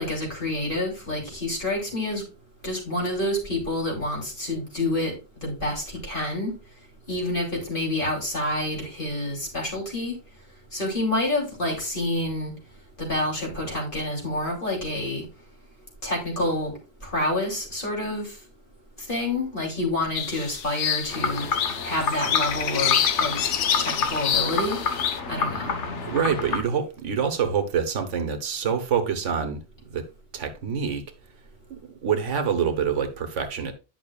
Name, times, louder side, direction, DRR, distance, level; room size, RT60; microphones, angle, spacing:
voice 1, 0.0-2.2 2.6-5.1 5.4-6.5 7.1-10.2 10.7-12.5 13.0-15.2 16.0-16.7 17.0-18.4 19.1-21.5 21.8-23.4 23.8-24.8 25.3-25.7, left 1 dB, 45° left, 3.3 m, -28 dB
sound 1, 20.2-25.2, left 9 dB, 85° left, 1.0 m, -27 dB
sound 2, 21.1-26.6, left 5 dB, 70° left, 1.5 m, -29 dB
voice 2, 26.1-29.6 29.9-30.1 30.3-31.0 31.7-33.7, right 7 dB, 80° right, 1.4 m, -26 dB
10.5 x 5.9 x 2.4 m
omnidirectional pair, 1.2 m